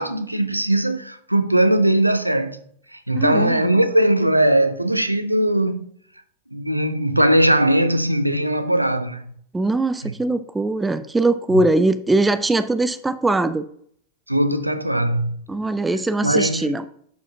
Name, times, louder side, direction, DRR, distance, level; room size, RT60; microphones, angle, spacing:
voice 1, 0.0-2.6 2.9-5.8 6.5-9.2 10.0-10.1 14.3-15.4 16.2-16.7, right 1 dB, 90° right, 0.5 m, -19 dB
voice 2, 3.1-3.6 9.5-13.6 15.5-16.8, right 2 dB, 10° right, 0.4 m, -21 dB
11.5 x 4.9 x 2.8 m
figure-of-eight pair, 90°, 0 cm